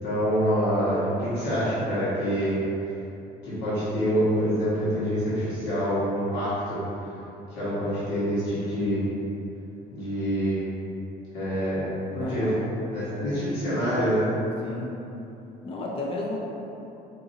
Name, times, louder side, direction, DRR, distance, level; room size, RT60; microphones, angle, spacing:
voice 1, 0.0-2.6 3.4-6.8 7.6-9.0 9.9-10.6 11.3-11.8 12.1-12.5 12.9-14.3, equal, 80° left, -12 dB, 1.4 m, -26 dB
voice 2, 12.2-12.7 13.0-13.4 14.6-14.9 15.6-16.4, left 2 dB, 35° left, -2 dB, 0.5 m, -33 dB
4.8 x 2.7 x 2.7 m, 3.0 s
cardioid pair, 110°, 17 cm